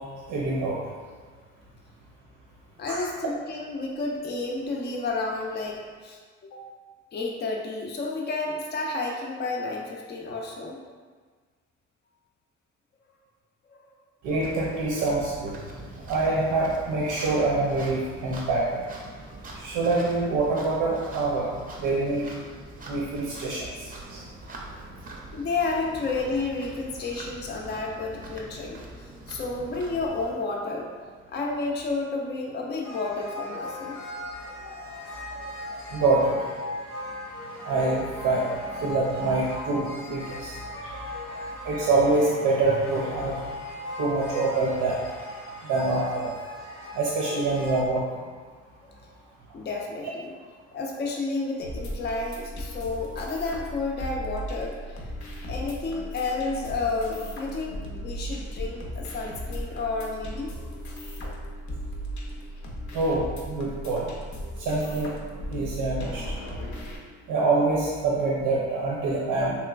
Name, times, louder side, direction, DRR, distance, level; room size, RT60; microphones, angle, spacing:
voice 1, 0.3-0.8 2.9-3.0 14.2-15.5 16.1-18.8 19.6-21.5 21.8-22.3 22.9-24.2 35.9-36.4 37.6-40.6 41.6-43.4 44.0-45.0 45.6-46.3 46.9-48.2 62.9-64.1 64.6-65.1 65.5-66.2 67.3-69.5, right 3 dB, 90° right, -4 dB, 0.6 m, -25 dB
voice 2, 2.8-6.6 7.1-10.8 24.3-24.4 25.3-28.8 29.3-30.9 31.3-34.0 40.8-41.3 49.5-50.3 50.7-54.8 55.5-60.6, left 3 dB, 35° left, -1 dB, 0.4 m, -31 dB
sound 1, 14.2-30.3, right 2 dB, 30° right, 0.5 m, -43 dB
sound 2, 32.8-47.8, left 1 dB, 90° left, 1.1 m, -38 dB
sound 3, 51.6-67.0, equal, 70° left, 0.7 m, -36 dB
3.1 x 3.0 x 2.3 m, 1.5 s
cardioid pair, 90°, 30 cm